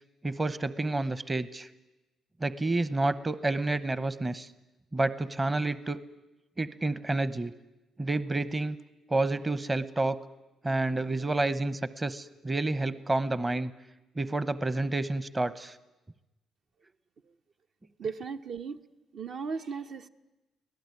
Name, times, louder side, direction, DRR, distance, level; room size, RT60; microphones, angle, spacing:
voice 1, 0.2-1.7 2.4-4.5 4.9-6.0 6.6-7.5 8.0-8.8 9.1-10.2 10.6-13.7 14.2-15.8, right 2 dB, 20° right, 15 dB, 0.9 m, -29 dB
voice 2, 18.0-18.8 19.1-20.1, right 5 dB, 60° right, 6 dB, 1.0 m, -36 dB
24.5 x 17.5 x 9.6 m, 1.1 s
cardioid pair, 90°, 0 cm